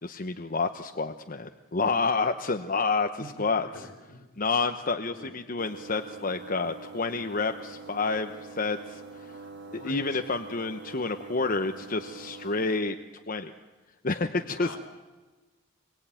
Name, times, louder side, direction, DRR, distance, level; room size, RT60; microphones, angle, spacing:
voice 1, 0.0-3.9 4.4-9.0 9.7-12.9 13.3-13.5 14.0-14.8, left 4 dB, 45° left, 6 dB, 1.0 m, -29 dB
voice 2, 3.2-4.2 5.1-5.3 9.6-10.0 14.5-14.8, equal, 75° left, 7 dB, 4.8 m, -44 dB
sound 1, 5.6-12.8, right 4 dB, 60° right, 2.7 m, -45 dB
25.5 x 22.5 x 9.0 m, 1.2 s
head